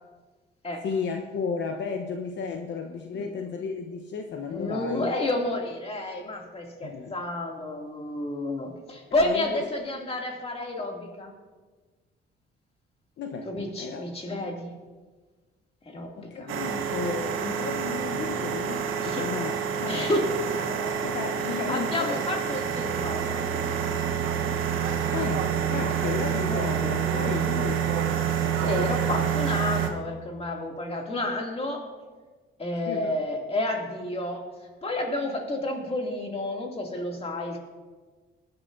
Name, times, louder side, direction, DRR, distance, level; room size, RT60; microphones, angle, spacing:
voice 1, 0.8-5.1 6.8-7.1 9.1-9.6 13.2-13.5 13.8-14.0 16.2-20.1 21.0-22.2 25.1-27.8 32.9-33.1, left 5 dB, 65° left, 4 dB, 1.0 m, -33 dB
voice 2, 4.5-11.3 13.4-14.7 15.8-16.5 19.0-19.3 19.9-21.0 21.5-23.8 27.2-27.4 28.5-31.9 32.6-34.5 34.8-37.6, left 2 dB, 30° left, 1 dB, 2.6 m, -31 dB
sound 1, 16.5-29.9, right 8 dB, 90° right, 1.2 m, -28 dB
19.0 x 11.0 x 2.7 m, 1.4 s
cardioid pair, 90°, 20 cm